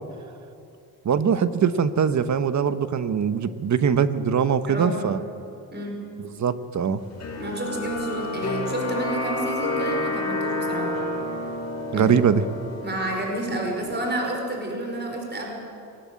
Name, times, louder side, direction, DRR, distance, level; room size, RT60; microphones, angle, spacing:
voice 1, 1.0-5.2 6.4-7.0 11.9-12.4, right 7 dB, 50° right, 12 dB, 1.1 m, -22 dB
voice 2, 4.7-5.1 5.7-6.0 7.4-10.9 11.9-12.1 12.8-15.5, right 1 dB, 30° right, 1 dB, 5.3 m, -30 dB
sound 1, 7.2-14.1, left 2 dB, 45° left, 4.7 m, -30 dB
21.5 x 18.5 x 8.5 m, 2.6 s
cardioid pair, 110°, 37 cm